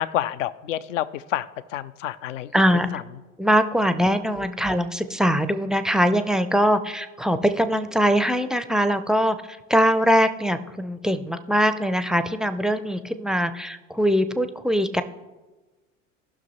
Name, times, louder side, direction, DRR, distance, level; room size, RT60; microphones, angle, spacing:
voice 1, 0.0-2.5 2.9-3.0, left 12 dB, 75° left, 16 dB, 0.6 m, -29 dB
voice 2, 2.5-2.9 3.4-15.0, equal, ahead, 10 dB, 0.4 m, -22 dB
18.0 x 6.0 x 3.0 m, 1.2 s
figure-of-eight pair, 75°, 39 cm